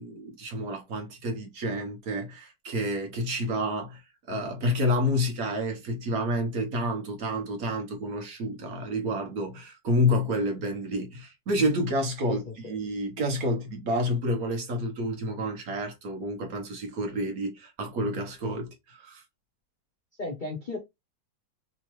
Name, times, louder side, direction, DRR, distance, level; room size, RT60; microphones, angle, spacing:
voice 1, 0.0-4.0 4.3-12.4 12.7-19.2, equal, 55° right, 1.3 m, -29 dB
voice 2, 12.3-12.7 20.2-20.8, left 3 dB, 85° left, 0.4 m, -35 dB
3.5 x 2.9 x 3.0 m
omnidirectional pair, 2.1 m